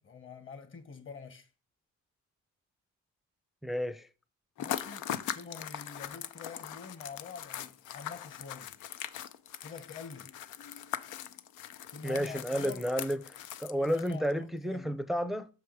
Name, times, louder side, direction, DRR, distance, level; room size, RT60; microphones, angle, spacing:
voice 1, 0.0-1.5 4.6-8.8 9.6-10.4 11.9-12.9 13.8-15.0, left 5 dB, 40° left, 1.4 m, -46 dB
voice 2, 3.6-4.1 12.0-13.2 13.6-15.5, equal, ahead, 0.5 m, -31 dB
sound 1, 4.6-14.3, left 11 dB, 90° left, 0.6 m, -41 dB
6.3 x 4.8 x 4.8 m
cardioid pair, 90°, 30 cm